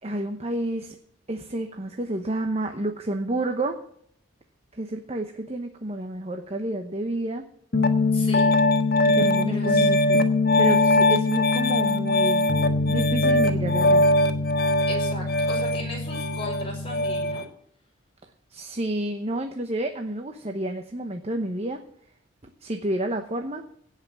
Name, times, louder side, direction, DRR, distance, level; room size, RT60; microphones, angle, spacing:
voice 1, 0.0-1.0 1.3-3.8 4.7-7.4 9.1-10.3 10.6-12.5 12.9-14.0 18.5-21.8 22.6-23.6, right 1 dB, 30° right, 5 dB, 0.9 m, -29 dB
Piano, 7.7-17.4, left 2 dB, 50° left, 1.3 m, -21 dB
voice 2, 8.1-8.5 9.5-9.9 14.9-17.4, left 1 dB, 30° left, 0 dB, 5.2 m, -37 dB
17.0 x 5.8 x 7.2 m, 0.68 s
head